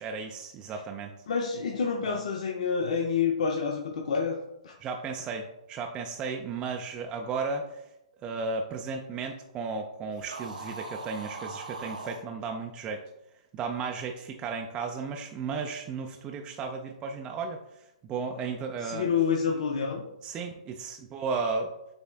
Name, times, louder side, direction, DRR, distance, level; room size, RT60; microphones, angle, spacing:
voice 1, 0.0-1.1 2.0-2.2 4.8-7.9 8.2-13.0 13.5-19.1 20.2-21.7, right 4 dB, 20° right, 2 dB, 0.4 m, -34 dB
voice 2, 1.3-4.4 4.6-4.7 18.8-20.0, left 6 dB, 65° left, 1 dB, 0.6 m, -28 dB
sound 1, 10.1-12.2, right 3 dB, 90° right, 0.8 m, -40 dB
7.1 x 3.3 x 2.2 m, 0.88 s
hypercardioid pair, 125°, 4 cm